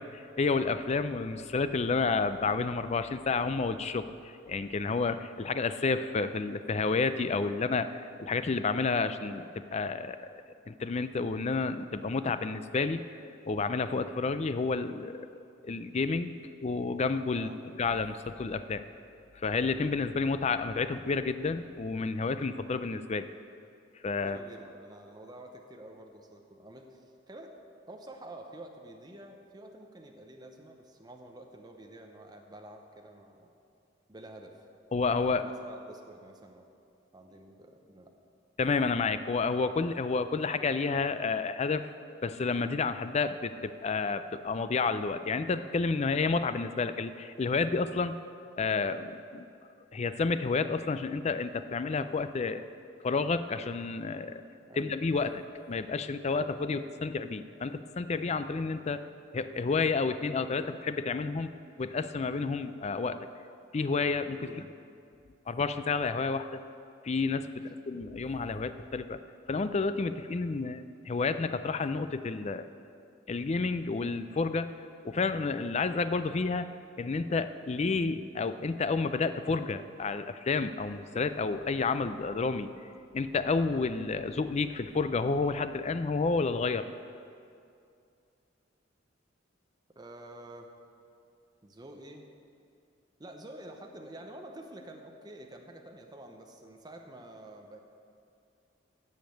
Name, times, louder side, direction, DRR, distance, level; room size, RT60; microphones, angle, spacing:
voice 1, 0.0-10.4 10.7-13.0 13.5-15.4 15.6-17.5 17.8-18.8 19.4-23.3 24.0-24.4 34.9-35.4 38.6-41.9 42.2-48.1 48.6-49.5 49.9-52.6 53.0-54.4 54.8-59.1 59.3-61.5 61.8-63.3 63.7-64.6 65.5-66.6 67.0-69.2 69.5-72.7 73.3-74.7 75.0-82.7 83.1-86.9, left 4 dB, 35° left, 11 dB, 0.4 m, -30 dB
voice 2, 17.3-17.6 24.2-27.5 27.9-33.5 34.1-34.6 35.3-36.7 37.1-38.1 54.7-54.9 64.5-64.7 67.6-67.7 90.0-90.7 91.6-92.3 93.2-97.8, right 1 dB, 20° right, 3 dB, 0.7 m, -48 dB
15.5 x 5.3 x 7.8 m, 2.5 s
head